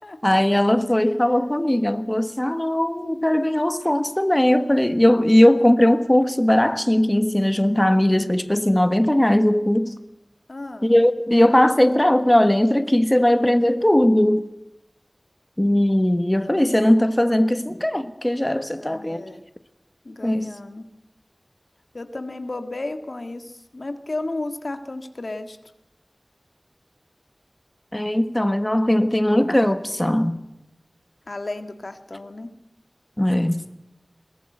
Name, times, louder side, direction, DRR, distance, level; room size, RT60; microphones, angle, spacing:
voice 1, 0.2-9.9 10.8-14.4 15.6-19.3 20.2-20.5 27.9-30.4 33.2-33.6, left 1 dB, 20° left, 1.3 m, -19 dB
voice 2, 10.5-10.9 18.8-19.4 20.0-20.9 21.9-25.6 31.3-32.5, left 2 dB, 80° left, 1.8 m, -33 dB
22.0 x 18.0 x 7.9 m
wide cardioid pair, 50°, 0 cm